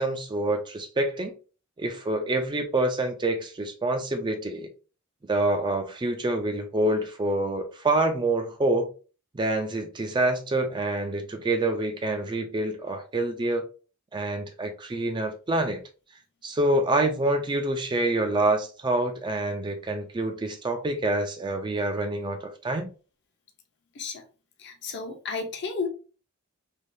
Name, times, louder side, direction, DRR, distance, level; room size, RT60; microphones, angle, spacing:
voice 1, 0.0-1.3 1.8-4.7 5.3-8.9 9.3-13.6 14.1-15.8 16.4-22.9, right 2 dB, 20° right, 0.4 m, -26 dB
voice 2, 24.6-25.9, left 4 dB, 55° left, 0.7 m, -32 dB
3.3 x 2.3 x 2.6 m
head